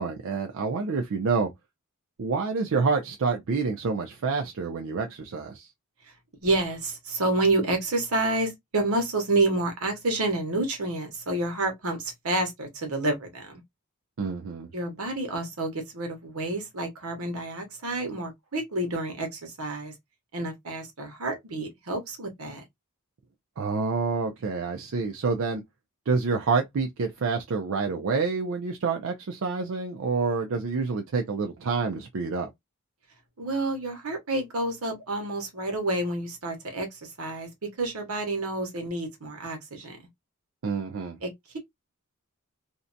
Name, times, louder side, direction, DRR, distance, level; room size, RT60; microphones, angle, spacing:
voice 1, 0.0-1.5 2.2-5.7 14.2-14.7 23.6-25.6 26.1-32.5 40.6-41.2, right 4 dB, 65° right, 0.4 m, -28 dB
voice 2, 6.4-13.6 14.7-19.9 20.3-22.6 33.4-40.0 41.2-41.6, right 2 dB, 80° right, 1.0 m, -29 dB
2.6 x 2.1 x 2.5 m
head